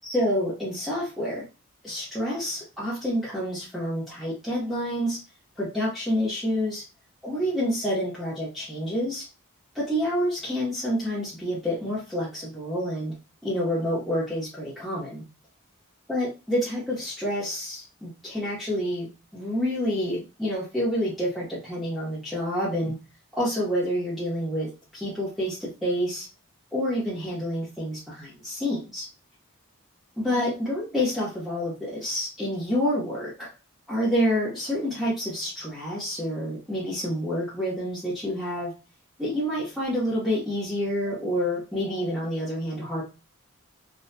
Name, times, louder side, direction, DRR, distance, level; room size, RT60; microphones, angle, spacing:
voice 1, 0.0-1.4 1.8-5.2 5.6-6.8 7.2-9.2 9.7-13.1 13.4-15.2 16.1-23.0 23.3-26.3 26.7-29.1 30.2-33.5 33.9-38.7 39.2-43.0, equal, ahead, -9 dB, 0.9 m, -28 dB
3.9 x 2.3 x 2.2 m, 0.29 s
head